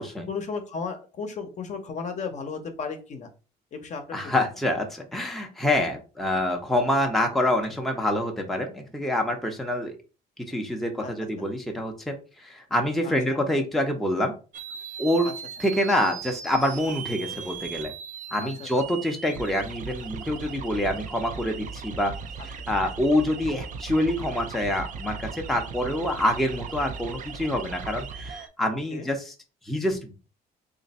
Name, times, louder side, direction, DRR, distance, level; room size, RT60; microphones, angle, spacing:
voice 1, 0.3-3.3 3.7-4.5 11.0-11.1 11.4-11.5 13.0-13.5 15.2-15.3 18.4-18.8 28.7-29.1, left 5 dB, 45° left, 6 dB, 0.8 m, -35 dB
voice 2, 4.1-10.0 10.5-14.3 15.0-15.3 15.6-17.9 18.3-22.1 22.4-29.3 29.6-30.1, left 1 dB, ahead, 2 dB, 0.7 m, -26 dB
sound 1, 14.5-28.5, right 6 dB, 50° right, 0.5 m, -38 dB
3.1 x 2.6 x 4.1 m, 0.34 s
cardioid pair, 110°, 17 cm